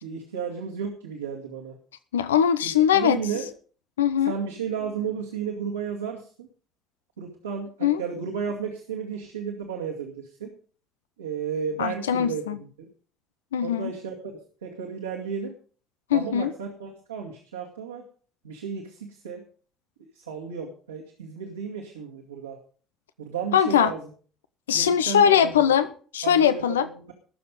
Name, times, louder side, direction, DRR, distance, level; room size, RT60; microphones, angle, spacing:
voice 1, 0.0-1.8 2.6-3.5 4.2-6.5 7.2-10.5 11.2-12.9 13.6-15.5 16.1-18.0 18.4-19.4 20.1-22.6 23.2-24.1 24.7-25.6 26.2-27.1, right 6 dB, 80° right, 2.2 m, -33 dB
voice 2, 2.1-3.2 4.0-4.3 7.8-8.0 11.8-12.6 13.5-13.9 16.1-16.5 23.5-23.9 24.7-26.9, left 9 dB, 75° left, 0.6 m, -21 dB
19.5 x 7.0 x 5.4 m
figure-of-eight pair, 55°, 0 cm